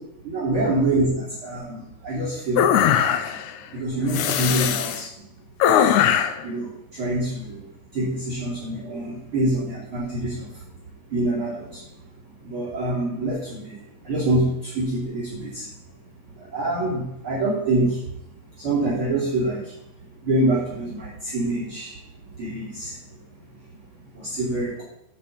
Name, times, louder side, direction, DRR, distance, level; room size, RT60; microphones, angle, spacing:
voice 1, 0.3-3.2 3.7-5.2 5.7-6.1 6.4-7.7 7.9-10.6 11.1-11.8 12.4-13.8 14.0-15.7 16.3-18.1 18.6-19.7 20.2-22.0 22.4-23.0 24.1-24.8, right 1 dB, 40° right, -7 dB, 3.3 m, -26 dB
sound 1, 2.6-3.5 4.1-5.0 5.6-6.4, left 9 dB, 75° left, 1.8 m, -20 dB
9.6 x 5.5 x 7.1 m, 0.81 s
omnidirectional pair, 4.1 m